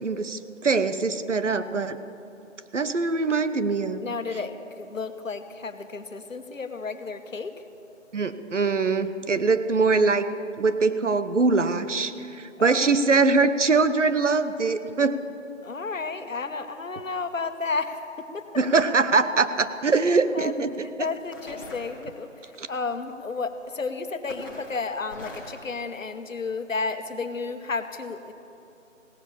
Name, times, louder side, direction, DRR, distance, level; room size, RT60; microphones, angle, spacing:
voice 1, 0.0-2.0 2.7-4.0 8.1-10.3 10.6-15.2 18.6-21.1 22.6-22.7, right 4 dB, 65° right, 12 dB, 0.9 m, -23 dB
voice 2, 4.0-7.5 12.6-12.9 15.6-18.5 20.3-20.5 20.8-28.3, left 4 dB, 90° left, 9 dB, 1.2 m, -32 dB
sound 1, 19.7-19.9 20.7-20.8 21.1-22.5 23.6-23.9 24.3-25.6, left 1 dB, 15° left, 1.7 m, -42 dB
17.0 x 11.0 x 7.2 m, 2.9 s
figure-of-eight pair, 180°, 38 cm